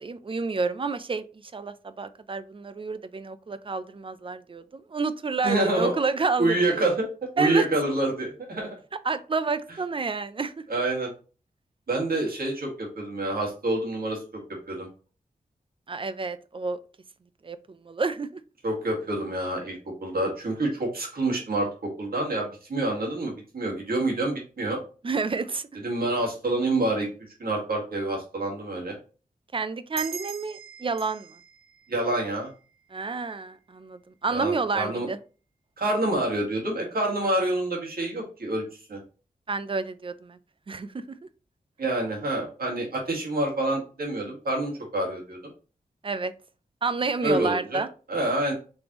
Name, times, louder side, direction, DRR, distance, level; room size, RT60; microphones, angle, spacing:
voice 1, 0.0-6.8 7.4-7.6 9.0-10.6 15.9-16.8 17.4-18.4 25.0-25.7 29.5-31.4 32.9-35.2 39.5-40.4 40.7-41.2 46.0-46.3 46.8-47.9, right 4 dB, 35° right, 13 dB, 0.5 m, -29 dB
voice 2, 5.4-6.0 6.4-7.1 7.4-8.7 10.7-11.1 11.9-14.2 14.7-14.9 18.6-21.7 22.0-24.8 25.8-27.1 27.4-29.0 31.9-32.5 34.3-35.1 35.8-38.6 38.9-39.0 41.8-45.4 47.2-47.8 48.1-48.5, right 2 dB, 70° right, -1 dB, 1.9 m, -27 dB
sound 1, 30.0-33.1, right 7 dB, 85° right, 0.6 m, -42 dB
5.2 x 3.4 x 3.0 m, 0.36 s
wide cardioid pair, 75°, 16 cm